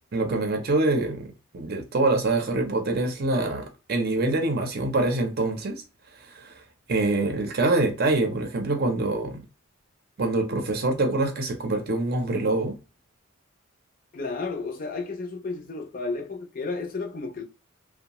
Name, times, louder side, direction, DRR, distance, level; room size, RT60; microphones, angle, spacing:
voice 1, 0.1-5.8 6.4-6.5 6.9-9.4 10.2-12.8, right 2 dB, 50° right, 0.6 m, -25 dB
voice 2, 14.1-17.4, left 3 dB, 40° left, 0.5 m, -32 dB
2.7 x 2.1 x 2.9 m
head